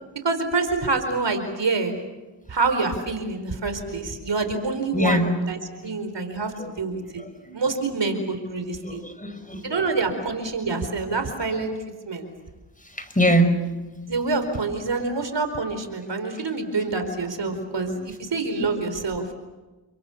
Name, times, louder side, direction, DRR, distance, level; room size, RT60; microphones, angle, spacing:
voice 1, 0.2-1.9 2.5-7.2 7.5-9.0 9.6-11.8 12.0-12.3 14.1-19.3, right 3 dB, 65° right, 8 dB, 4.6 m, -26 dB
voice 2, 4.9-5.3 6.6-6.7 7.2-7.6 8.8-9.8 12.8-13.6 17.5-17.9, equal, 15° left, 8 dB, 5.6 m, -24 dB
29.0 x 26.0 x 7.2 m, 1.2 s
cardioid pair, 45°, 46 cm